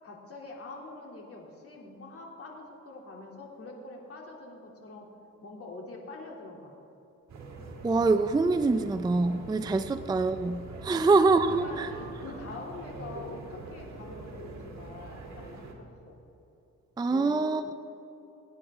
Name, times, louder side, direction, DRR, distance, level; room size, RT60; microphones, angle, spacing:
voice 1, 0.0-5.1 5.4-6.7 9.8-9.9 10.8-11.1 11.5-16.2 17.1-17.4, left 3 dB, 50° left, -1 dB, 2.9 m, -45 dB
sound 1, 7.3-15.7, right 3 dB, 65° right, 2.3 m, -43 dB
voice 2, 7.8-11.9 17.0-17.7, right 3 dB, 15° right, 9 dB, 0.4 m, -25 dB
22.5 x 9.7 x 3.6 m, 2.9 s
cardioid pair, 105°, 31 cm